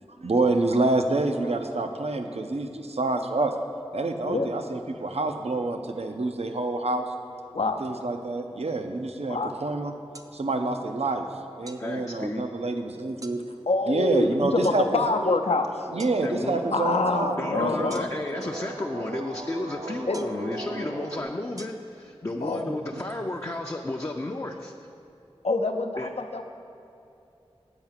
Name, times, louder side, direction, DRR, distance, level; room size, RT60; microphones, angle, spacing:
voice 1, 0.2-3.5 3.9-7.1 7.8-9.9 10.3-11.3 11.6-13.5 13.9-15.0 15.9-18.0 22.3-23.0, right 2 dB, 80° right, 6 dB, 0.6 m, -27 dB
sound 1, 10.1-10.3 11.7-11.8 13.2-13.4 14.6-14.8 16.0-16.2 17.9-18.3 20.1-20.4 21.6-21.7, right 1 dB, 35° right, 0.5 m, -44 dB
voice 2, 11.8-12.4 16.2-16.6 17.4-24.7 26.0-26.1, left 2 dB, 30° left, 1 dB, 0.4 m, -32 dB
voice 3, 13.7-15.9 16.7-18.1 20.1-20.3 22.4-22.8 25.4-26.4, left 3 dB, 80° left, 5 dB, 0.6 m, -26 dB
sound 2, 15.8-21.2, right 1 dB, 50° right, 0.9 m, -38 dB
8.0 x 4.8 x 7.3 m, 2.8 s
wide cardioid pair, 50°, 11 cm